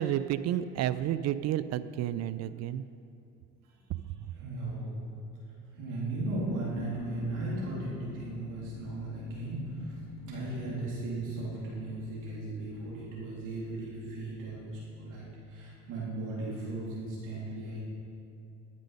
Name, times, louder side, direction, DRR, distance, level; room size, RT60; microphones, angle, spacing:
voice 1, 0.0-2.8 4.2-4.3, right 11 dB, 55° right, 15 dB, 0.4 m, -31 dB
voice 2, 4.3-5.0 5.7-17.8, right 2 dB, 70° right, -6 dB, 2.5 m, -37 dB
sound 1, 6.1-16.0, left 6 dB, 50° left, 0.6 m, -47 dB
13.5 x 5.2 x 5.3 m, 2.6 s
supercardioid pair, 75°, 32 cm